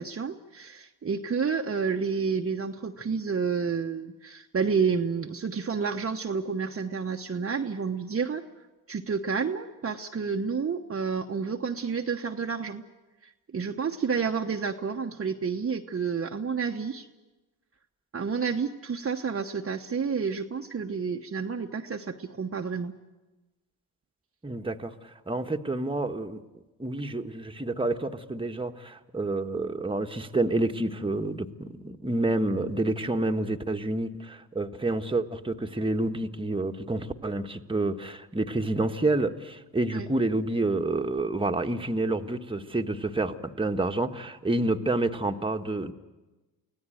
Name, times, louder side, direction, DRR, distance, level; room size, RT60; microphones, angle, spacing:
voice 1, 0.0-8.4 8.9-12.8 13.2-17.1 18.1-22.9 39.9-40.1, right 5 dB, 30° right, 3 dB, 1.2 m, -30 dB
voice 2, 24.4-26.4 26.8-45.9, right 2 dB, 10° right, 5 dB, 1.5 m, -28 dB
24.0 x 16.5 x 9.2 m, 1.1 s
hypercardioid pair, 55°, 43 cm